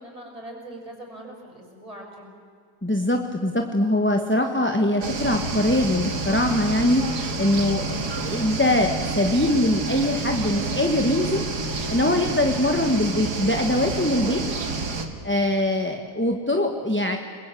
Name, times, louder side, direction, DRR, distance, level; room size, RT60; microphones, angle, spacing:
voice 1, 0.0-2.3, right 1 dB, 20° right, 1 dB, 6.3 m, -41 dB
voice 2, 2.8-11.4 11.9-14.4 15.2-17.2, left 1 dB, 10° left, 4 dB, 1.4 m, -22 dB
sound 1, 5.0-15.1, right 3 dB, 85° right, 2.7 m, -29 dB
30.0 x 21.5 x 8.5 m, 2.3 s
omnidirectional pair, 1.7 m